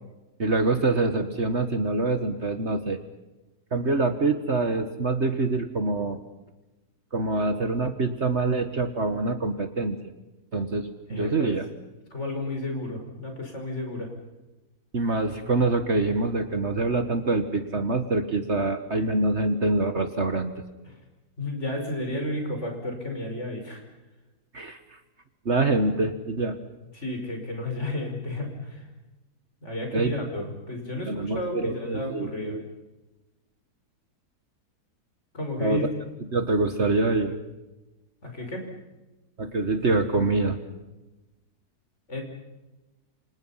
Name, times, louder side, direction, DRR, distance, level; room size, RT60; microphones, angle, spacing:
voice 1, 0.4-3.0 3.7-6.2 7.1-10.0 10.5-11.6 14.9-20.5 24.5-25.0 25.4-26.6 29.9-30.4 31.1-32.6 35.6-35.9 36.3-37.4 39.4-40.6, right 3 dB, 45° right, 8 dB, 1.7 m, -25 dB
voice 2, 11.1-11.5 12.1-14.1 20.9-21.0 21.4-23.8 26.9-28.9 29.6-32.6 35.3-35.9 38.2-38.7 42.1-42.2, left 1 dB, 45° left, 3 dB, 5.8 m, -32 dB
29.0 x 26.0 x 5.8 m, 1.1 s
omnidirectional pair, 1.7 m